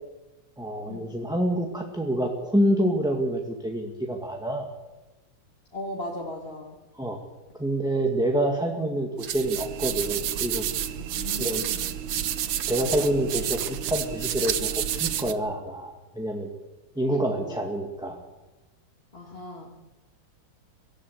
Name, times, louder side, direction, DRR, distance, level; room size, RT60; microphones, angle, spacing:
voice 1, 0.6-4.7 6.9-7.2 7.6-10.7 11.4-11.6 12.7-16.5 17.0-18.2, right 1 dB, ahead, 1 dB, 1.7 m, -27 dB
voice 2, 5.7-6.8 11.0-11.8 17.3-17.6 19.1-19.7, left 1 dB, 30° left, -1 dB, 2.3 m, -37 dB
sound 1, 9.2-15.3, right 10 dB, 85° right, 1.8 m, -29 dB
24.0 x 13.5 x 8.1 m, 1.1 s
omnidirectional pair, 2.2 m